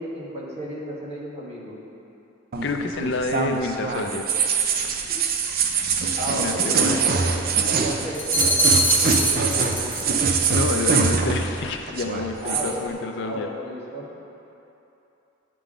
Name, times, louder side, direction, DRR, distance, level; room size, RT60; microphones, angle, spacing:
voice 1, 0.0-1.8 6.1-7.3 7.6-10.1 12.4-14.2, equal, 30° right, -5 dB, 1.3 m, -33 dB
sound 1, 2.5-11.6 11.9-12.7, right 5 dB, 50° right, 0.5 m, -23 dB
voice 2, 2.6-4.3 6.4-7.0 10.5-13.5, left 3 dB, 60° left, 5 dB, 0.5 m, -28 dB
sound 2, 8.1-10.1 10.4-10.7, left 3 dB, 10° left, 0.4 m, -25 dB
9.2 x 3.8 x 5.0 m, 2.9 s
head